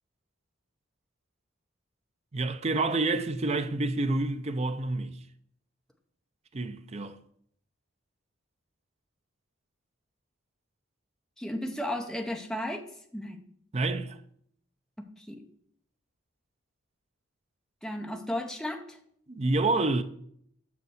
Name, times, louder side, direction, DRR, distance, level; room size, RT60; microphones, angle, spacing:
voice 1, 2.3-5.2 6.5-7.2 13.7-14.2 19.3-20.0, right 2 dB, 30° right, 0.5 m, -28 dB
voice 2, 11.4-12.8 13.1-13.4 15.0-15.4 17.8-19.0, left 1 dB, ahead, 0.7 m, -34 dB
7.0 x 5.8 x 6.3 m
head